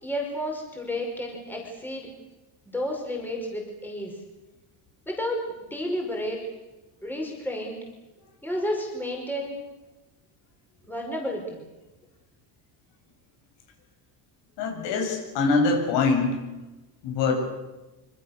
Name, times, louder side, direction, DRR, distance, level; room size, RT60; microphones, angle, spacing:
voice 1, 0.0-2.1 2.7-4.1 5.1-6.4 7.0-7.8 8.4-9.6 10.9-11.6, left 1 dB, 5° left, 0 dB, 5.4 m, -31 dB
voice 2, 14.6-16.4 17.0-17.3, left 4 dB, 80° left, 3 dB, 7.9 m, -23 dB
26.0 x 26.0 x 6.8 m, 1.0 s
cardioid pair, 175°, 42 cm